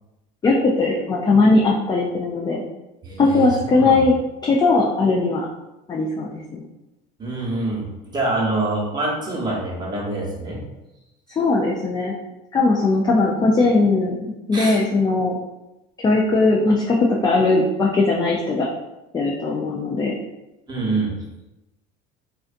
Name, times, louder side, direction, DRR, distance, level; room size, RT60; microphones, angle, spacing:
voice 1, 0.4-2.6 3.2-4.1 4.4-5.5 5.9-6.6 11.4-12.1 12.5-15.3 16.0-18.7 19.1-20.2, left 3 dB, 20° left, -2 dB, 0.4 m, -19 dB
voice 2, 3.0-4.1 7.2-10.6 14.5-14.8 20.7-21.1, right 2 dB, 20° right, -4 dB, 0.9 m, -26 dB
2.5 x 2.2 x 2.5 m, 0.97 s
supercardioid pair, 85°, 20 cm